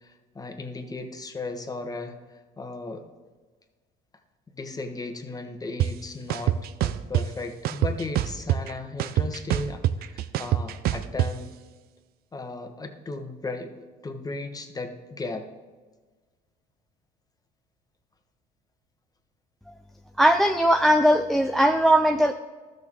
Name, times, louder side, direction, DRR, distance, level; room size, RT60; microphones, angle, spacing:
voice 1, 0.0-3.0 4.6-11.6 12.3-15.5, left 3 dB, 20° left, 6 dB, 1.2 m, -36 dB
sound 1, 5.8-5.9 6.3-7.2 7.6-8.7 9.0-11.3, right 12 dB, 60° right, 0.5 m, -24 dB
voice 2, 20.2-22.3, right 1 dB, ahead, 7 dB, 0.4 m, -19 dB
13.0 x 6.6 x 3.7 m, 1.3 s
supercardioid pair, 80°, 17 cm